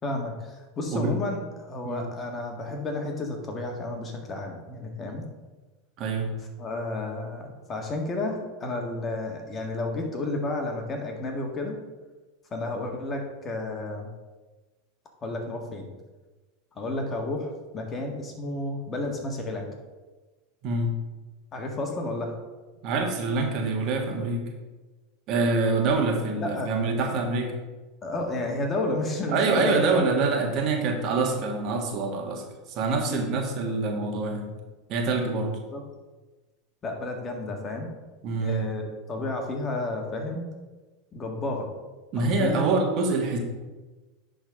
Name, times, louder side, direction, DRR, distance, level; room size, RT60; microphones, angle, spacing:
voice 1, 0.0-5.2 6.6-11.8 12.5-14.1 15.2-15.9 16.7-19.7 21.5-22.4 26.3-27.2 28.0-30.0 33.1-33.3 35.7-35.8 36.8-37.9 38.4-40.4 41.1-41.7 42.1-42.7, left 2 dB, 30° left, 2 dB, 1.8 m, -31 dB
voice 2, 6.0-6.3 20.6-20.9 22.8-24.5 25.3-27.5 29.3-34.6 34.9-35.6 38.2-38.6 42.1-43.4, right 3 dB, 50° right, 2 dB, 1.6 m, -25 dB
10.5 x 4.0 x 5.0 m, 1.2 s
hypercardioid pair, 90°, 0 cm